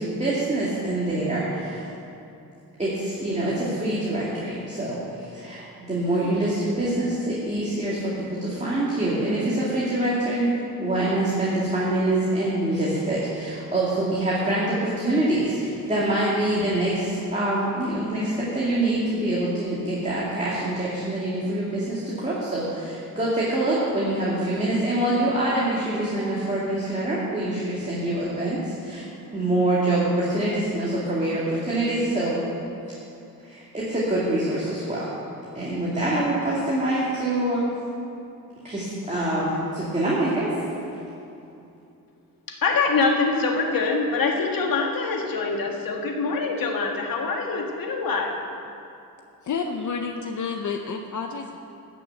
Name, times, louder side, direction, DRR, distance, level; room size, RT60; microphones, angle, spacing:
voice 1, 0.0-1.9 2.8-10.5 10.8-29.0 29.3-32.4 33.4-35.1 35.5-37.6 38.6-40.5, right 1 dB, 20° right, -7 dB, 2.3 m, -25 dB
voice 2, 42.5-48.4, left 4 dB, 70° left, 1 dB, 1.7 m, -24 dB
voice 3, 49.4-51.6, left 5 dB, 55° left, 4 dB, 0.7 m, -30 dB
13.5 x 6.2 x 8.1 m, 2.7 s
wide cardioid pair, 115°, 36 cm